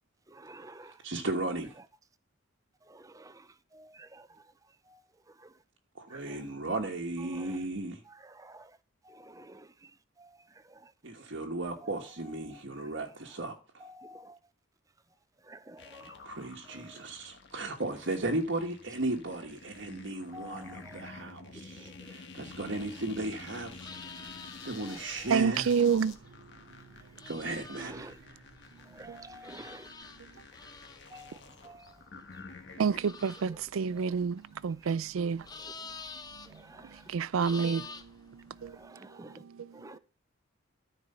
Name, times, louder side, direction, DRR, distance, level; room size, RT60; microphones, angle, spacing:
voice 1, 0.3-1.0 2.8-4.5 4.9-5.6 6.1-6.4 7.2-7.6 8.1-8.8 9.0-10.9 11.8-12.9 13.8-14.4 15.4-16.2 16.7-17.1 20.3-21.2 21.5-22.2 24.8-25.3 27.8-28.2 28.9-29.9 31.1-32.0 33.9-34.1 35.4-35.7 36.5-37.1 37.5-37.8 38.6-39.4 39.7-40.0, right 1 dB, 15° right, 0.5 m, -51 dB
voice 2, 1.0-1.8 5.9-8.0 11.0-13.8 16.2-23.9 24.2-24.3 24.6-25.7 27.2-28.1, right 2 dB, 60° right, 1.2 m, -35 dB
sound 1, 15.8-33.3, left 4 dB, 60° left, 1.4 m, -50 dB
sound 2, 22.4-38.9, left 4 dB, 20° left, 0.7 m, -50 dB
voice 3, 25.3-26.2 29.1-29.2 32.8-35.5 37.1-38.8 39.3-39.9, right 6 dB, 85° right, 0.4 m, -29 dB
13.5 x 4.7 x 5.5 m
head